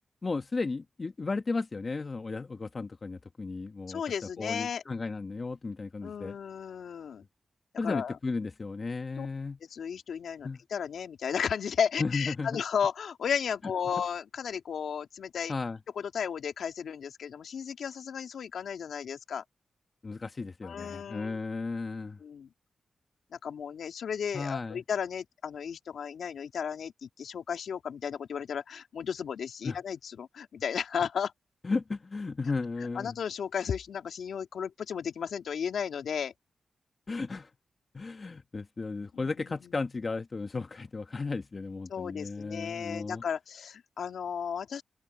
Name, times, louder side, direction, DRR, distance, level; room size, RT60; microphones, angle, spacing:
voice 1, 0.2-4.0 4.4-6.4 7.8-9.6 10.4-10.6 12.0-12.6 15.5-15.8 20.0-22.2 24.3-24.8 29.6-29.8 31.6-33.1 37.1-37.5 37.9-43.2, left 3 dB, 40° left, 1.3 m, -34 dB
voice 2, 3.9-4.8 6.0-7.2 7.7-8.2 9.2-9.3 9.7-15.5 16.0-19.4 20.6-21.4 22.2-22.5 23.3-31.3 32.8-36.3 39.1-39.6 41.9-44.8, left 7 dB, 80° left, 2.5 m, -34 dB
cardioid pair, 60°, 0 cm